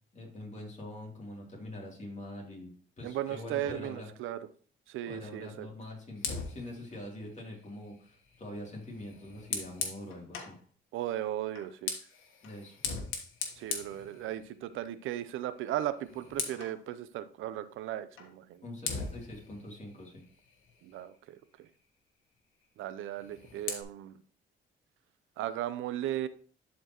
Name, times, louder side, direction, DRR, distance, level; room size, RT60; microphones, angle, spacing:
voice 1, 0.1-2.7 3.0-4.1 5.0-10.5 12.4-12.8 18.6-20.2, left 1 dB, 35° left, -1 dB, 3.0 m, -44 dB
voice 2, 3.0-4.4 4.9-5.7 10.9-12.0 13.6-18.6 20.8-21.7 22.8-24.2 25.4-26.3, right 12 dB, 85° right, 13 dB, 0.6 m, -36 dB
Fire, 6.2-10.6 11.5-14.8 15.1-15.4 15.7-16.8 18.2-18.3 18.8-21.2 23.0-23.8, left 6 dB, 85° left, 1.4 m, -40 dB
11.0 x 4.4 x 3.0 m, 0.43 s
cardioid pair, 90°, 20 cm